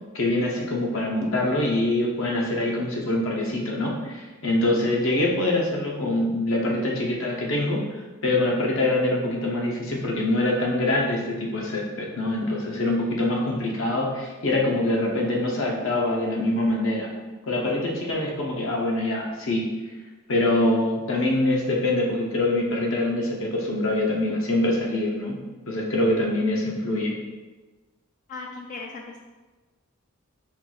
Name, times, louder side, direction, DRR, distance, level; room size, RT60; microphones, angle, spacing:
voice 1, 0.1-7.8 8.2-17.1 17.5-19.6 20.3-25.4 25.7-27.1, left 1 dB, 60° left, -2 dB, 0.7 m, -24 dB
voice 2, 28.3-29.2, left 3 dB, 35° left, 0 dB, 0.3 m, -37 dB
4.4 x 2.4 x 3.9 m, 1.2 s
head